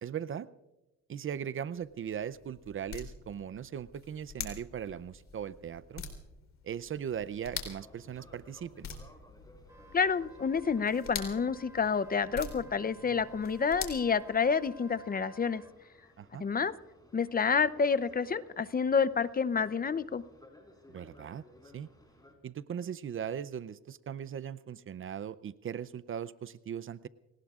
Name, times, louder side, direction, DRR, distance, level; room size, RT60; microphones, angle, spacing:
voice 1, 0.0-0.5 1.1-6.0 6.6-8.9 16.2-16.4 20.9-21.4 21.7-21.9 22.4-27.1, right 8 dB, 45° right, 17 dB, 0.6 m, -39 dB
sound 1, 1.7-14.9, left 6 dB, 60° left, 3.4 m, -46 dB
Boat Water vehicle, 7.4-22.3, left 1 dB, 15° left, 4.8 m, -59 dB
Wind instrument woodwind instrument, 9.7-15.7, equal, 10° right, 2.1 m, -55 dB
voice 2, 9.9-15.6 16.4-16.7 17.1-20.2, left 5 dB, 30° left, 15 dB, 0.6 m, -29 dB
29.0 x 19.0 x 2.4 m, 1.0 s
cardioid pair, 90°, 30 cm